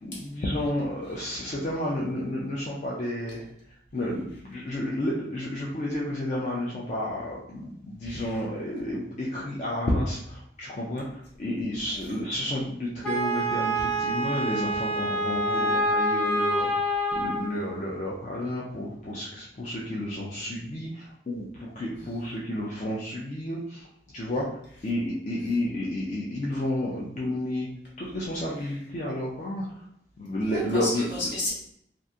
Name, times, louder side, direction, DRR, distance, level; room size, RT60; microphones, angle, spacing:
voice 1, 0.0-3.4 3.9-23.9 24.1-24.6 24.8-27.7 28.0-29.9 30.2-31.0, left 1 dB, 40° left, -4 dB, 0.4 m, -31 dB
voice 2, 8.0-8.3 11.9-12.1 28.6-28.7 30.5-31.5, left 1 dB, 70° left, -7 dB, 1.3 m, -33 dB
Wind instrument woodwind instrument, 13.0-17.6, equal, 5° left, 0.7 m, -26 dB
2.7 x 2.5 x 2.3 m, 0.70 s
head